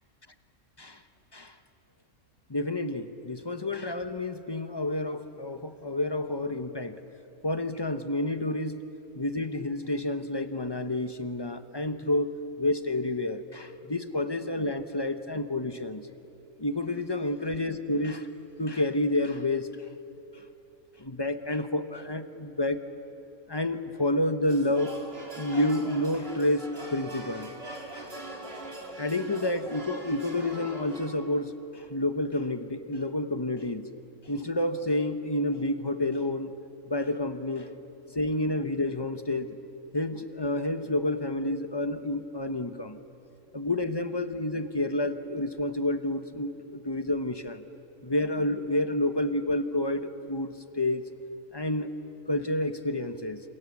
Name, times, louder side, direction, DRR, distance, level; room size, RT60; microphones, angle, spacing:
voice 1, 2.5-7.0 7.4-8.8 9.1-16.1 16.6-18.3 18.6-19.9 21.0-22.8 23.5-24.9 25.4-27.5 28.5-28.6 29.0-33.8 34.3-36.5 36.9-37.7 38.1-39.5 39.9-43.0 43.5-47.6 48.0-51.0 51.5-51.9 52.3-53.4, left 1 dB, 20° left, 9 dB, 0.8 m, -29 dB
sound 1, 24.5-31.1, right 1 dB, 40° right, 2.7 m, -42 dB
28.0 x 27.0 x 7.2 m, 2.9 s
omnidirectional pair, 1.5 m